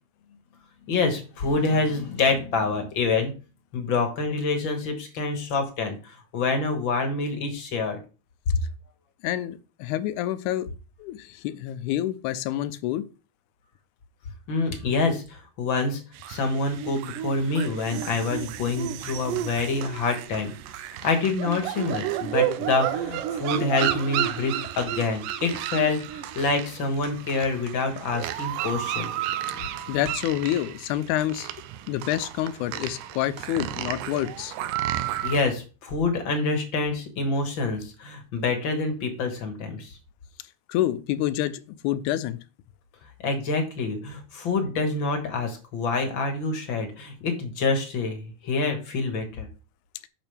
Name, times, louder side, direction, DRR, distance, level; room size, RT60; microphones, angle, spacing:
voice 1, 0.9-3.3 3.7-8.0 14.5-20.5 21.0-30.0 35.2-40.0 43.2-49.5, left 3 dB, 50° left, 5 dB, 1.6 m, -27 dB
voice 2, 9.2-10.7 11.0-13.0 29.9-31.5 31.9-34.5 40.7-42.4, left 13 dB, 80° left, 13 dB, 2.0 m, -28 dB
sound 1, 16.2-35.4, right 12 dB, 85° right, 2.2 m, -32 dB
8.9 x 6.4 x 3.4 m, 0.34 s
omnidirectional pair, 3.7 m